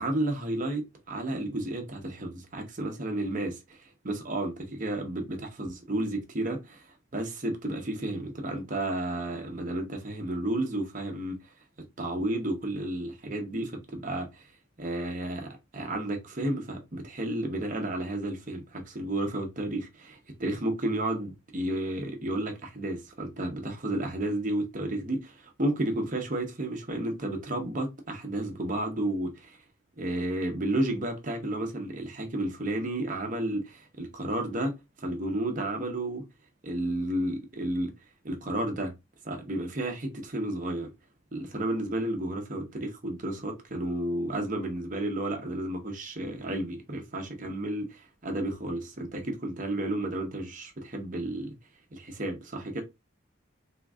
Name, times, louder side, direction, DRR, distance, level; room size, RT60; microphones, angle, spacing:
voice 1, 0.0-11.5 12.0-14.5 14.8-29.6 30.0-36.2 36.6-37.9 38.2-39.0 39.2-40.9 41.3-51.5 51.9-52.8, right 1 dB, 40° right, 0.8 m, -32 dB
3.5 x 2.9 x 2.3 m
head